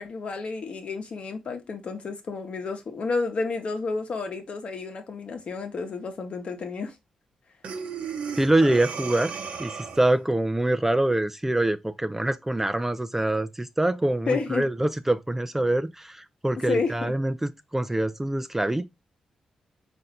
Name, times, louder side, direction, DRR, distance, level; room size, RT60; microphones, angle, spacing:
voice 1, 0.0-6.9 14.3-14.7 16.7-17.1, left 4 dB, 55° left, 1.0 m, -30 dB
Breathing, 7.6-10.2, right 6 dB, 65° right, 0.7 m, -35 dB
voice 2, 8.4-18.9, right 1 dB, 15° right, 0.4 m, -25 dB
4.1 x 2.6 x 3.8 m
supercardioid pair, 45°, 2 cm